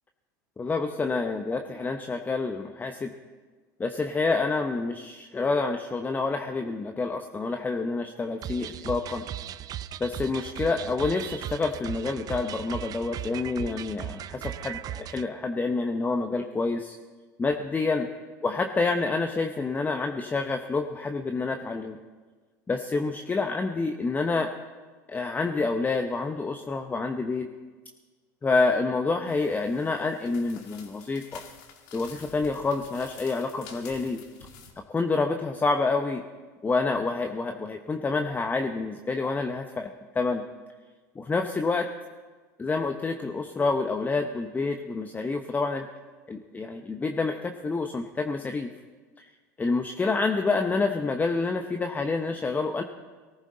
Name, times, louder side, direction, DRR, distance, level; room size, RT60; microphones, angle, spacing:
voice 1, 0.6-3.1 3.8-9.3 10.0-17.0 17.4-18.1 18.4-22.0 22.7-24.5 25.1-27.5 28.4-31.4 31.9-34.2 34.9-36.2 36.6-40.4 41.2-41.9 42.6-45.9 46.3-48.7 49.2-49.3 49.6-52.8, left 3 dB, 20° left, 6 dB, 0.8 m, -28 dB
sound 1, 8.4-15.3, right 11 dB, 40° right, 0.5 m, -37 dB
sound 2, 29.3-34.7, left 7 dB, 65° left, 2.0 m, -49 dB
19.0 x 14.5 x 3.9 m, 1.4 s
hypercardioid pair, 85°, 10 cm